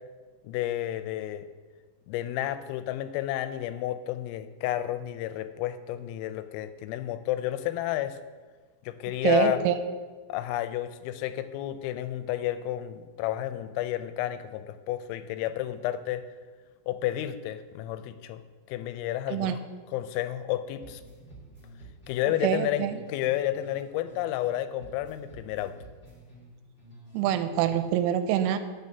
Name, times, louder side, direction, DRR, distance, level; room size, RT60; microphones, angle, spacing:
voice 1, 0.4-1.5 2.1-8.2 8.8-9.6 10.3-16.2 16.9-18.4 18.7-19.6 19.9-21.0 22.1-25.7, left 13 dB, 90° left, 11 dB, 3.2 m, -31 dB
voice 2, 9.2-9.8 19.3-19.6 22.4-23.0 27.1-28.6, right 10 dB, 85° right, 9 dB, 3.0 m, -25 dB
sound 1, 20.8-24.5 24.8-28.0, right 1 dB, 15° left, 2.3 m, -50 dB
17.0 x 6.1 x 2.7 m, 1.4 s
omnidirectional pair, 5.8 m